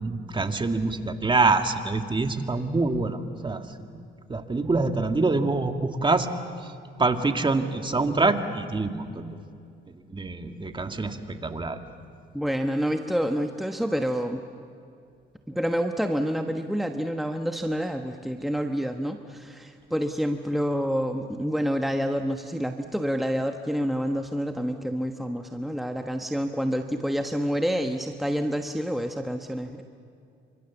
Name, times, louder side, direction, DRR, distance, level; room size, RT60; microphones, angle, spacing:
voice 1, 0.0-3.6 4.3-6.3 7.0-9.3 9.9-11.8, right 3 dB, 25° right, 6 dB, 1.9 m, -25 dB
voice 2, 12.3-14.4 15.5-29.8, equal, ahead, 5 dB, 1.3 m, -28 dB
29.5 x 26.0 x 7.2 m, 2.4 s
cardioid pair, 90°, 20 cm